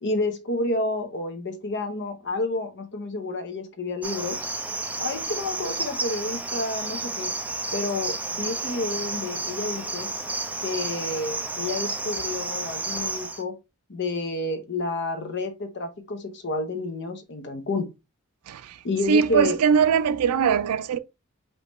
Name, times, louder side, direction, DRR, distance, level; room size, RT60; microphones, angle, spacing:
voice 1, 0.0-4.4 5.0-7.3 7.7-10.1 10.6-13.5 13.9-17.9 18.8-19.6, left 2 dB, 55° left, 0.9 m, -30 dB
Cricket, 4.0-13.4, right 2 dB, 5° right, 0.5 m, -31 dB
voice 2, 19.1-21.0, right 6 dB, 80° right, 0.4 m, -21 dB
5.2 x 2.9 x 3.0 m
head